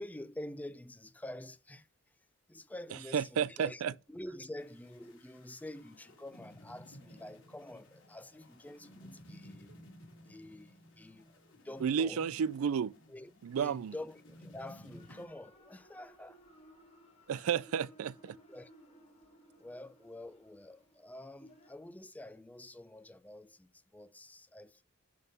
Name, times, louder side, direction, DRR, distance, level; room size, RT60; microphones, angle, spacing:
voice 1, 0.0-3.8 4.1-9.7 10.2-11.3 11.6-12.2 13.1-13.3 13.6-16.4 17.4-17.5 18.5-18.7 19.6-24.8, left 1 dB, 5° left, 0.4 m, -47 dB
voice 2, 3.1-3.9 11.8-12.9 13.4-13.9 17.3-18.4, right 7 dB, 80° right, 0.4 m, -32 dB
sound 1, 4.6-15.2, equal, 60° left, 3.1 m, -56 dB
sound 2, 15.0-21.8, equal, 30° left, 2.0 m, -61 dB
11.0 x 3.7 x 5.5 m
head